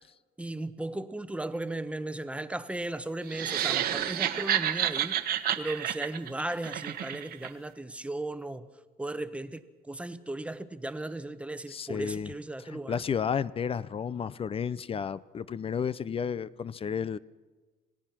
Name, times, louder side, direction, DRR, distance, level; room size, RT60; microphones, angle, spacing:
voice 1, 0.4-8.7 9.0-13.0, right 2 dB, 5° right, 1.1 m, -36 dB
sound 1, 3.3-7.5, right 11 dB, 65° right, 1.4 m, -30 dB
voice 2, 11.7-12.3 12.7-17.2, left 7 dB, 35° left, 0.6 m, -32 dB
27.0 x 17.5 x 6.0 m
cardioid pair, 110°, 17 cm